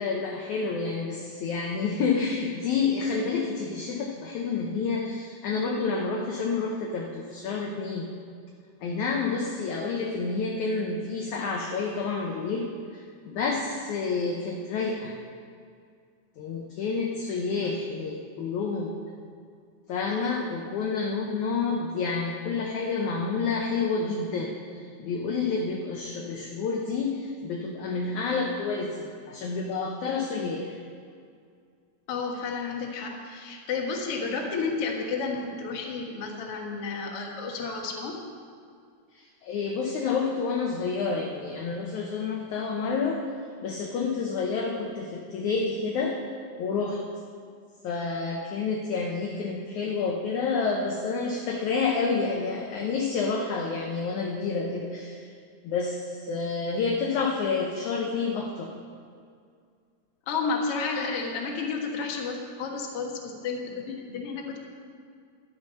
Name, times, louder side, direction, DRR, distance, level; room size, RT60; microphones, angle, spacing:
voice 1, 0.0-8.1 8.8-12.7 12.9-15.1 16.4-19.0 19.9-30.8 39.1-43.2 43.6-46.1 46.6-47.0 47.8-55.2 55.6-58.7, left 4 dB, 70° left, 0 dB, 2.0 m, -29 dB
voice 2, 32.1-38.2 60.3-64.6, left 4 dB, 50° left, 0 dB, 2.0 m, -31 dB
12.5 x 10.5 x 5.6 m, 2.2 s
omnidirectional pair, 4.3 m